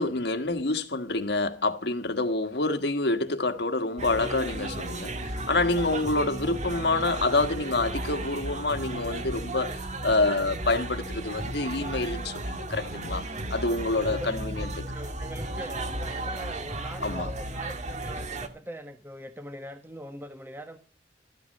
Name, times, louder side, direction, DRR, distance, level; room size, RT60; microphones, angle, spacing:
voice 1, 0.0-13.2 13.5-14.7 17.0-17.3, left 2 dB, 65° left, 1.6 m, -27 dB
sound 1, 4.0-18.5, right 1 dB, 40° right, 1.8 m, -34 dB
voice 2, 14.1-20.8, equal, 15° right, 1.3 m, -42 dB
14.0 x 12.5 x 5.4 m
head